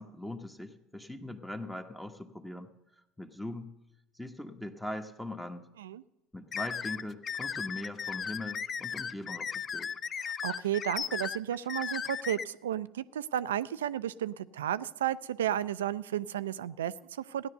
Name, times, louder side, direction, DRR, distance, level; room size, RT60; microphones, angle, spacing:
voice 1, 0.0-2.7 3.2-3.7 4.1-5.7 6.3-9.9, left 1 dB, 5° left, 5 dB, 1.2 m, -41 dB
sound 1, 6.5-12.4, left 7 dB, 35° left, 0.5 m, -36 dB
voice 2, 10.2-17.5, right 11 dB, 80° right, 17 dB, 0.4 m, -33 dB
15.5 x 10.5 x 6.6 m, 0.93 s
figure-of-eight pair, 70°, 0 cm